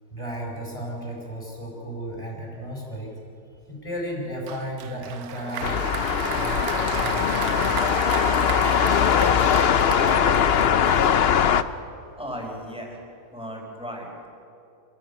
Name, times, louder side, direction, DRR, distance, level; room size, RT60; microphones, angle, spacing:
voice 1, 0.1-3.2 3.7-5.9 6.3-8.2, right 1 dB, 20° left, -1 dB, 5.4 m, -34 dB
Applause, 4.5-11.6, right 8 dB, 70° right, 1.3 m, -33 dB
sound 1, 5.6-11.6, left 8 dB, 55° left, 0.7 m, -21 dB
voice 2, 12.2-13.0 13.3-14.3, equal, 5° right, -1 dB, 5.0 m, -36 dB
27.0 x 17.0 x 8.6 m, 2.6 s
omnidirectional pair, 1.7 m